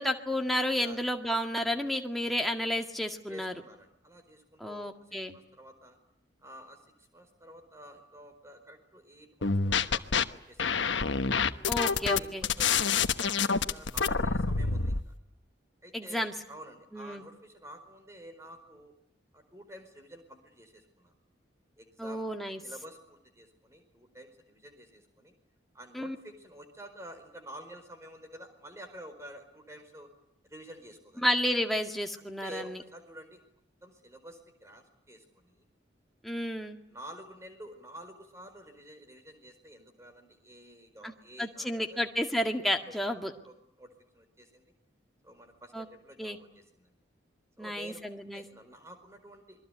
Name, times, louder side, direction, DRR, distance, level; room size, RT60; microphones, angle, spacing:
voice 1, 0.0-3.5 4.6-5.4 11.7-12.5 15.9-16.3 16.9-17.2 22.0-22.6 25.9-26.2 31.2-32.8 36.2-36.8 41.0-41.1 41.4-43.3 45.7-45.9 46.2-46.4 47.6-48.4, equal, ahead, 3 dB, 1.9 m, -31 dB
voice 2, 0.7-1.0 3.3-6.0 6.4-10.9 11.7-15.1 15.8-18.9 19.3-21.1 21.8-22.2 22.6-25.3 25.7-30.1 30.4-31.3 32.2-33.4 33.8-35.7 36.9-42.0 42.9-43.2 43.4-44.6 45.2-46.9 47.6-48.0 48.3-49.6, right 1 dB, 15° right, 6 dB, 4.6 m, -50 dB
sound 1, 9.4-10.2 10.6-15.0, left 5 dB, 80° left, 1.2 m, -27 dB
28.0 x 22.5 x 8.3 m, 0.75 s
head